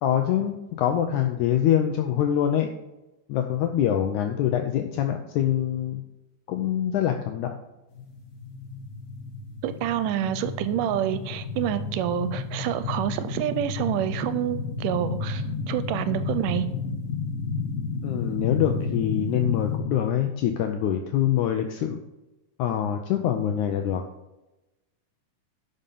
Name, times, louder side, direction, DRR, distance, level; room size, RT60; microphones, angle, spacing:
voice 1, 0.0-2.7 3.3-6.0 6.5-7.6 18.0-22.0 22.6-24.0, left 10 dB, 80° left, 5 dB, 1.9 m, -24 dB
sound 1, 7.9-19.8, left 4 dB, 55° left, 3.0 m, -32 dB
voice 2, 9.6-16.7, right 10 dB, 85° right, 12 dB, 2.2 m, -27 dB
11.5 x 5.4 x 5.4 m, 0.98 s
omnidirectional pair, 3.8 m